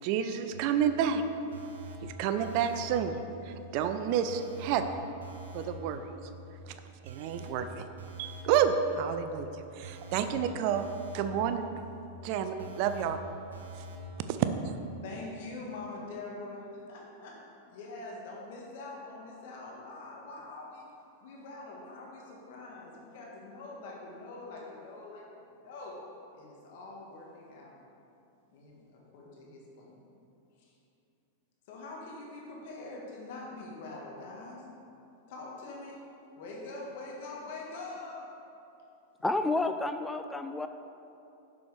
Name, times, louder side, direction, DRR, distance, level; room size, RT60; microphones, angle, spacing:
voice 1, 0.0-1.2 2.0-4.9 5.5-6.1 6.7-6.8 7.0-7.8 8.2-9.5 9.8-10.9 11.1-11.7 12.2-13.2 14.3-14.4, right 8 dB, 55° right, 9 dB, 0.5 m, -30 dB
sound 1, 0.5-14.6, equal, 85° right, 1.0 m, -46 dB
voice 2, 15.0-17.4 17.7-20.8 21.2-26.0 26.3-27.8 28.5-30.0 31.7-34.6 35.3-36.0 36.4-38.4, left 2 dB, 65° left, -2 dB, 1.7 m, -44 dB
voice 3, 39.2-40.7, left 2 dB, 10° left, 8 dB, 0.3 m, -30 dB
6.9 x 6.1 x 4.9 m, 2.7 s
hypercardioid pair, 110°, 0 cm